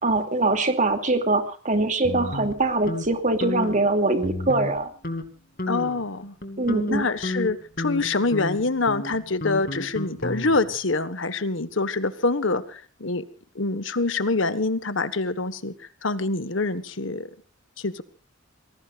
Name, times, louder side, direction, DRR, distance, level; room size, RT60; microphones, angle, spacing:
voice 1, 0.0-4.9 6.6-7.1, right 2 dB, 40° right, 7 dB, 2.7 m, -23 dB
sound 1, 2.0-3.1 3.4-3.8 4.2-4.8 5.0-5.3 5.6-6.0 6.4-10.8, left 1 dB, 45° left, 2.6 m, -32 dB
voice 2, 5.7-6.3 6.9-13.2 13.5-15.7 16.0-17.3 17.8-18.0, left 3 dB, 65° left, 13 dB, 1.5 m, -25 dB
28.5 x 20.0 x 2.5 m, 0.38 s
head